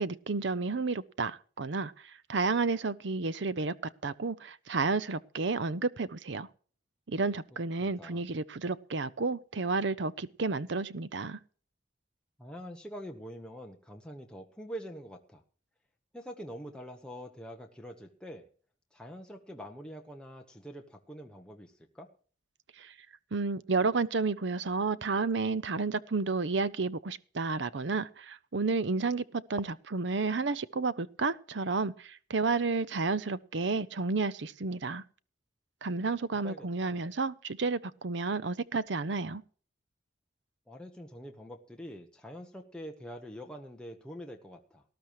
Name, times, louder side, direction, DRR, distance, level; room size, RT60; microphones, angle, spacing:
voice 1, 0.0-3.7 4.0-6.5 7.1-11.4 22.8-22.9 23.3-35.0 35.8-39.4, right 4 dB, 70° right, 0.7 m, -31 dB
voice 2, 7.8-8.2 12.4-15.4 16.1-18.5 18.9-22.1 36.4-37.0 40.7-44.8, equal, 5° left, 1.2 m, -45 dB
19.0 x 12.0 x 3.1 m
head